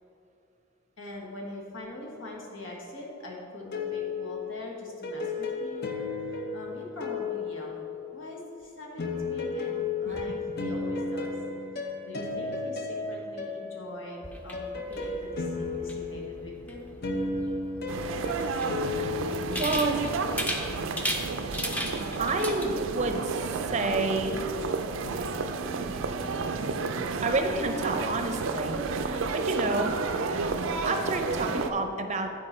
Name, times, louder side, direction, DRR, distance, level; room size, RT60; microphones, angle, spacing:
voice 1, 1.0-5.9 6.5-7.8 8.1-11.3 11.7-16.9, left 1 dB, 80° left, -2 dB, 1.4 m, -43 dB
sound 1, 3.6-8.3 9.0-20.2, left 3 dB, 55° left, 0.7 m, -34 dB
sound 2, 14.2-22.7, equal, 10° left, 0.6 m, -37 dB
sound 3, 17.9-31.7, right 4 dB, 80° right, 0.4 m, -31 dB
voice 2, 18.9-20.3 22.2-24.4 27.2-30.0 30.3-30.5 30.8-32.3, right 2 dB, 35° right, 6 dB, 0.6 m, -30 dB
9.9 x 4.7 x 4.3 m, 2.7 s
head